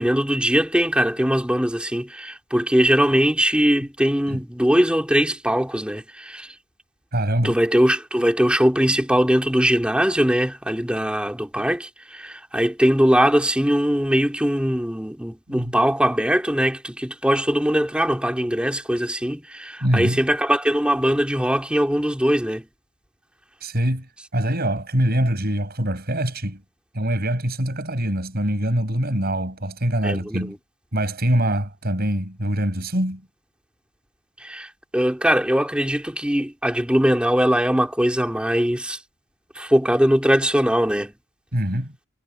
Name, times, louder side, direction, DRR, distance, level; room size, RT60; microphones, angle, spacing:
voice 1, 0.0-6.5 7.4-22.7 30.0-30.5 34.4-39.0 39.5-41.2, equal, 5° right, 3.2 m, -21 dB
voice 2, 7.1-7.6 15.5-15.7 19.8-20.2 23.6-26.6 26.9-30.6 30.9-33.2 41.5-41.9, right 1 dB, 50° right, 5.8 m, -24 dB
head